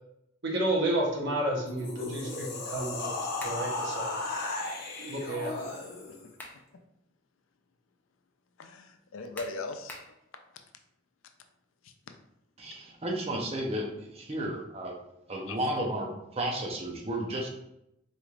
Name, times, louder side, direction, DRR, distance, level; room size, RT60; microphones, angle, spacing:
voice 1, 0.4-3.1 3.4-4.2 5.0-5.5, right 1 dB, 65° right, -1 dB, 1.0 m, -31 dB
sound 1, 1.7-6.3, left 2 dB, 60° left, 0.9 m, -35 dB
sound 2, 3.4-3.7 6.0-6.7 7.2-7.3 9.3-10.2, left 1 dB, 10° left, 0.6 m, -45 dB
voice 2, 5.0-5.3 8.6-10.0 11.8-11.9 12.6-12.7 15.5-15.6, left 3 dB, 85° left, 6 dB, 0.4 m, -40 dB
voice 3, 12.6-14.9 15.3-17.5, right 1 dB, 30° right, 0 dB, 0.7 m, -33 dB
4.1 x 3.2 x 2.4 m, 0.81 s
head